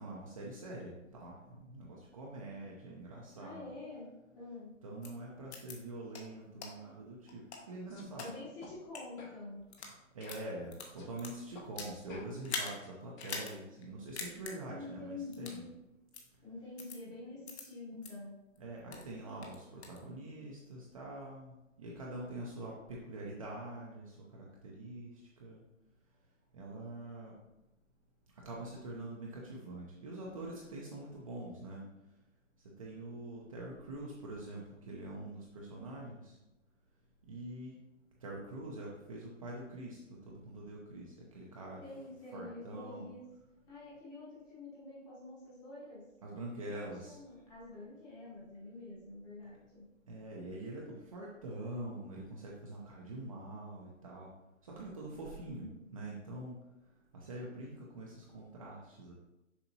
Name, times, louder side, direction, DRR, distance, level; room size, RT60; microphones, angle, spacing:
voice 1, 0.0-3.7 4.8-8.3 10.1-15.7 18.6-25.1 25.4-25.6 26.5-27.3 28.4-31.9 32.8-36.4 37.3-37.7 38.2-41.8 42.3-43.1 46.2-47.2 50.1-54.3 54.6-55.7 55.9-56.6 57.1-59.1, right 1 dB, 25° right, -4 dB, 0.6 m, -45 dB
voice 2, 3.3-4.7 8.2-9.6 14.7-15.8 16.4-18.4 41.8-43.3 43.7-46.1 46.7-49.9 55.4-55.8, left 2 dB, 10° left, -6 dB, 1.0 m, -47 dB
sound 1, 5.0-5.1 5.5-5.7 6.1-6.2 6.6-6.7 7.3-8.3 8.8-9.0 9.6-9.9 10.2-12.0 12.4-12.7 13.2-13.5 13.8-13.9 14.2-14.5 15.3-15.6 16.1-16.2 16.8-17.0 17.5-17.6 18.0-18.1 18.5-19.1 19.4-20.0, left 4 dB, 55° left, 1.2 m, -42 dB
sound 2, 7.9-8.1 8.6-8.7 9.2-9.4 9.8-9.9 10.2-11.1 11.5-11.7 12.1-13.5, left 3 dB, 75° left, 2.0 m, -54 dB
6.9 x 4.9 x 2.8 m, 0.95 s
hypercardioid pair, 155°, 40 cm